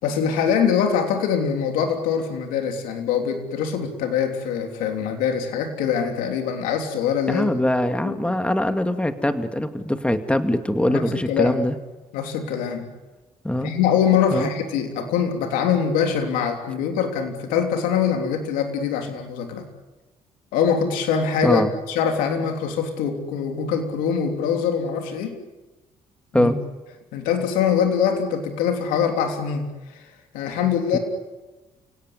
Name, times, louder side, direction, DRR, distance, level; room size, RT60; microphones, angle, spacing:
voice 1, 0.0-7.5 8.0-8.4 10.9-11.6 12.1-12.9 13.6-19.7 20.5-25.4 26.3-26.5 27.1-29.7 29.9-30.0 30.3-31.0, left 7 dB, 85° left, 5 dB, 3.4 m, -23 dB
voice 2, 7.3-11.7 13.4-13.7 14.3-14.5 21.4-21.7 26.3-26.6 30.9-31.0, left 1 dB, 10° left, 8 dB, 2.3 m, -22 dB
29.0 x 17.5 x 9.8 m, 1.2 s
supercardioid pair, 60°, 14 cm